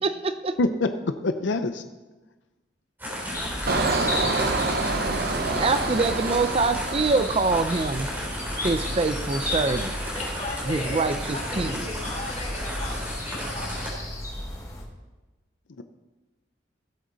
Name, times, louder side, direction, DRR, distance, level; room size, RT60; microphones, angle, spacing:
voice 1, 0.0-0.5 5.6-8.1 8.6-9.9 10.7-11.8, right 3 dB, 35° right, 11 dB, 0.5 m, -25 dB
voice 2, 0.6-1.8, left 2 dB, 85° left, 9 dB, 0.6 m, -25 dB
sound 1, 3.0-13.9, equal, 10° right, 3.6 m, -33 dB
sound 2, 3.3-14.8, left 1 dB, 20° left, 1.8 m, -35 dB
Engine, 3.7-8.3 8.7-9.0, right 3 dB, 60° right, 1.0 m, -28 dB
voice 3, 10.1-11.0 11.3-13.8, left 2 dB, 40° left, -1 dB, 3.0 m, -36 dB
16.5 x 8.1 x 4.0 m, 1.2 s
head